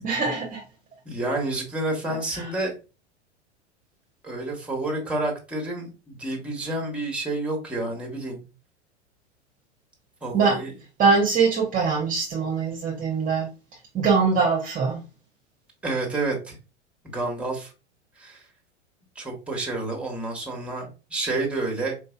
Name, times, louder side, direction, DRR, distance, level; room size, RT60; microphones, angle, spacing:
voice 1, 0.0-0.6 2.1-2.5 10.3-10.6 11.0-13.5 13.9-15.0, right 5 dB, 25° right, -1 dB, 0.9 m, -22 dB
voice 2, 1.0-2.7 4.2-8.4 10.2-10.7 15.8-16.5 17.0-17.7 18.2-18.4 19.1-21.9, right 2 dB, 5° right, 0 dB, 1.2 m, -29 dB
4.3 x 2.6 x 2.4 m, 0.31 s
figure-of-eight pair, 95°, 36 cm